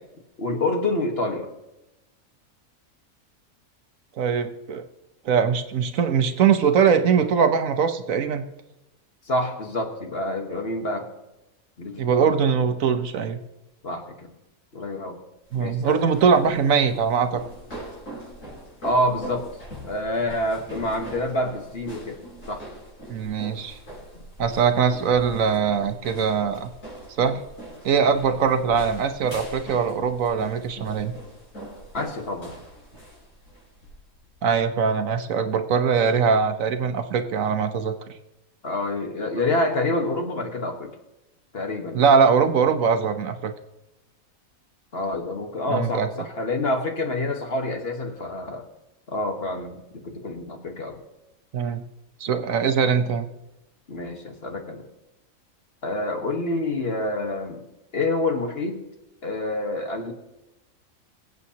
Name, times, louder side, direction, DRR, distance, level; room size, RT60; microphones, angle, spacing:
voice 1, 0.4-1.5 9.2-11.1 11.8-12.4 13.8-14.3 14.7-15.2 15.6-16.0 18.8-19.5 19.8-22.2 22.5-22.6 24.1-24.2 31.9-32.6 38.6-40.9 41.5-42.1 44.9-48.7 49.1-51.0 53.9-54.8 55.8-57.6 57.9-58.8 59.2-60.1, left 2 dB, 45° left, 3 dB, 1.5 m, -27 dB
voice 2, 4.2-4.8 5.2-8.4 12.0-13.4 15.5-17.4 23.1-23.8 24.4-26.7 27.2-27.4 27.8-31.1 34.4-38.0 41.9-43.5 45.7-46.1 51.5-51.8 52.2-53.3, right 6 dB, 70° right, 8 dB, 1.2 m, -21 dB
sound 1, 15.4-34.7, right 1 dB, 65° left, 5.3 m, -42 dB
22.5 x 8.2 x 2.8 m, 0.95 s
omnidirectional pair, 1.5 m